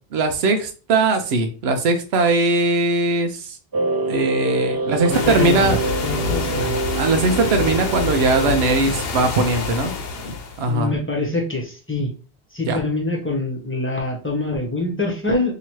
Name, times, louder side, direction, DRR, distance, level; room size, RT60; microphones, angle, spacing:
voice 1, 0.1-3.6 4.1-5.8 7.0-9.9 10.6-10.9 12.7-12.8, right 2 dB, 85° right, 6 dB, 0.9 m, -20 dB
sound 1, 3.7-8.8, right 3 dB, 30° right, 0.4 m, -26 dB
sound 2, 5.1-10.7, left 4 dB, 75° left, 1.0 m, -26 dB
voice 2, 5.1-5.8 6.0-6.8 10.7-12.1 12.5-15.5, left 2 dB, 15° left, -1 dB, 0.9 m, -24 dB
2.9 x 2.8 x 4.4 m, 0.37 s
omnidirectional pair, 1.0 m